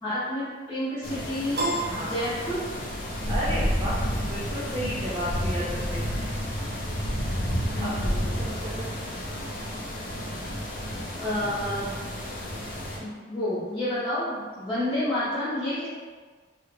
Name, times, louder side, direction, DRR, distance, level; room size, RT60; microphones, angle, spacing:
voice 1, 0.0-1.7 2.1-2.6 7.6-8.0 11.2-12.0 13.0-15.9, left 1 dB, 25° left, -14 dB, 0.9 m, -29 dB
sound 1, 1.0-13.0, equal, 55° left, 0.6 m, -31 dB
Piano, 1.5-3.1, right 1 dB, 60° right, 0.8 m, -31 dB
voice 2, 3.3-6.1 7.8-9.1, equal, 25° right, -8 dB, 0.5 m, -33 dB
3.0 x 2.4 x 3.2 m, 1.5 s
head